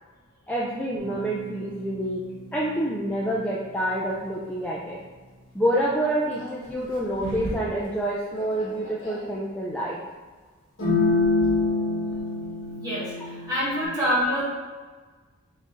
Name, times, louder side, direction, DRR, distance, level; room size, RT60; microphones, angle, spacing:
voice 1, 0.5-2.2 2.5-5.0 5.5-10.0, right 1 dB, 10° left, -5 dB, 0.3 m, -27 dB
sound 1, 1.0-3.3 6.4-6.5 7.2-7.7 8.4-9.2 10.8-13.8, left 2 dB, 60° left, 1.3 m, -28 dB
voice 2, 12.8-14.4, equal, 15° right, -8 dB, 1.4 m, -26 dB
5.0 x 2.6 x 3.6 m, 1.4 s
head